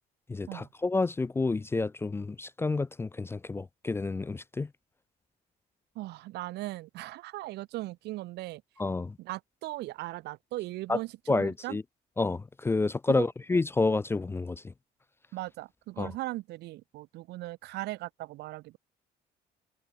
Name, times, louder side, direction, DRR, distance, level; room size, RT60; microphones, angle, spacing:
voice 1, 0.3-4.7 8.8-9.2 10.9-11.0 11.3-11.8 12.2-14.7 16.0-16.1, left 3 dB, 15° left, 0.3 m, -29 dB
voice 2, 5.9-8.6 9.2-11.8 13.1-13.3 15.3-18.8, right 18 dB, 80° right, 0.9 m, -38 dB
cardioid pair, 110°, 17 cm